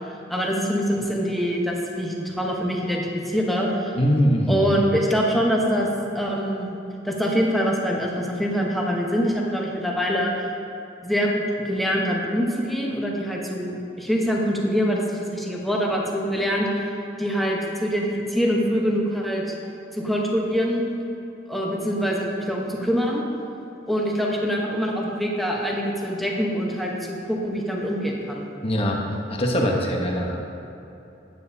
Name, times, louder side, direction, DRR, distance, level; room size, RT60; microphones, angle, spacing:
voice 1, 0.1-3.9 4.5-5.9 6.1-6.7 7.0-10.3 11.0-19.5 19.9-20.8 21.5-23.2 23.9-28.4, equal, ahead, -2 dB, 0.9 m, -24 dB
voice 2, 4.0-4.7 28.6-29.0 29.3-30.4, equal, 30° left, 0 dB, 1.0 m, -22 dB
9.2 x 9.0 x 2.7 m, 2.9 s
head